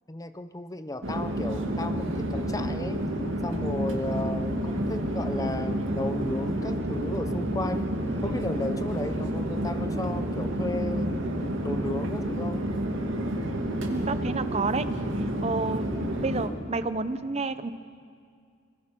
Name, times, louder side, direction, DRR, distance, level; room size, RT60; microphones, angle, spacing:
voice 1, 0.1-3.0 3.4-7.9 8.2-11.3 11.6-12.7, left 2 dB, 20° left, 10 dB, 0.7 m, -34 dB
Chatter / Fixed-wing aircraft airplane, 1.0-16.5, right 1 dB, 80° right, 2.3 m, -29 dB
voice 2, 13.9-14.8 15.2-15.9 16.2-17.7, right 3 dB, 30° right, 12 dB, 0.7 m, -30 dB
25.0 x 21.5 x 6.1 m, 2.2 s
head